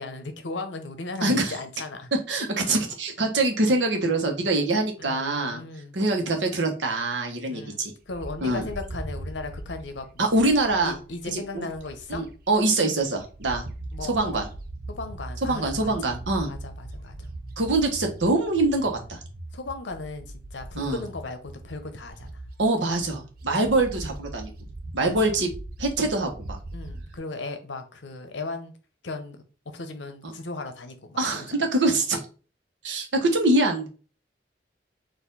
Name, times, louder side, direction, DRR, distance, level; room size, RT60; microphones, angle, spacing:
voice 1, 0.0-2.1 5.0-6.0 7.5-10.3 10.8-12.2 13.9-14.4 15.0-16.2 16.5-17.3 19.5-20.3 20.5-22.4 23.6-23.8 25.0-25.3 26.7-28.7 29.0-31.2 31.6-31.7, left 3 dB, 80° left, 0.8 m, -37 dB
voice 2, 1.2-1.5 2.3-5.6 5.9-7.9 8.4-8.6 10.2-10.9 11.3-11.7 12.1-13.6 14.0-14.5 15.4-16.5 17.6-19.2 20.8-21.0 22.6-24.5 24.9-25.5 25.8-26.6 30.2-30.4 31.2-32.2 32.8-33.9, right 2 dB, 85° right, 1.1 m, -24 dB
Bird, 8.1-12.6 13.0-27.2, right 1 dB, 55° right, 0.5 m, -40 dB
4.3 x 2.6 x 3.9 m
head